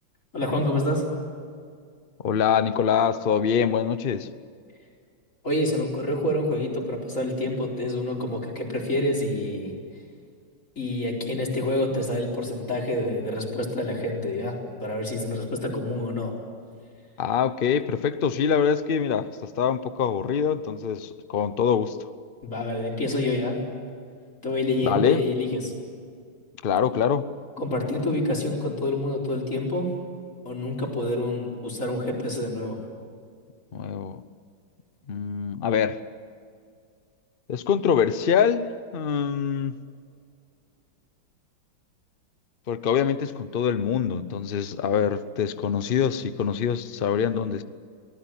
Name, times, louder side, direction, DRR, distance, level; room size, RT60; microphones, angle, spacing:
voice 1, 0.3-1.1 5.4-9.7 10.8-16.3 22.4-23.6 24.4-25.7 27.6-29.9 30.4-32.8, left 1 dB, 40° left, -1 dB, 4.8 m, -27 dB
voice 2, 2.2-4.3 17.2-22.0 24.8-25.2 26.6-27.3 33.7-34.2 35.1-36.0 37.5-38.7 38.9-39.7 42.7-47.6, left 7 dB, 85° left, 12 dB, 0.4 m, -24 dB
24.5 x 19.0 x 9.0 m, 2.2 s
omnidirectional pair, 2.2 m